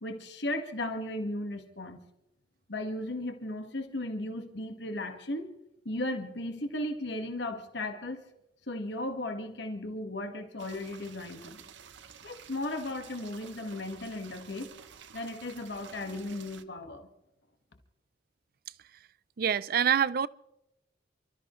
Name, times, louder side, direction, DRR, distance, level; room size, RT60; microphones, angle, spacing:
voice 1, 0.0-2.0 2.7-5.5 5.9-8.2 8.7-11.7 12.2-14.7 15.1-17.1, left 1 dB, 60° left, 1.6 m, -36 dB
sound 1, 10.6-16.6, right 7 dB, 70° right, 0.9 m, -51 dB
voice 2, 19.4-20.3, right 8 dB, 50° right, 0.4 m, -25 dB
29.0 x 13.5 x 3.1 m
head